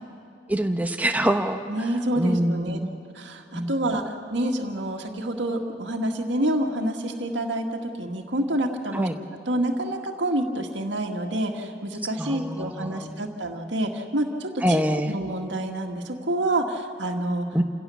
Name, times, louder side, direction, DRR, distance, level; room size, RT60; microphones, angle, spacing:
voice 1, 0.5-1.9 2.2-2.9 3.5-3.8 8.9-9.2 12.2-13.2 14.6-15.2 17.5-17.6, right 1 dB, 10° right, 6 dB, 1.0 m, -25 dB
voice 2, 1.7-2.8 3.1-9.1 9.5-17.5, right 1 dB, 75° right, 2 dB, 1.9 m, -28 dB
28.5 x 16.5 x 7.1 m, 2.4 s
head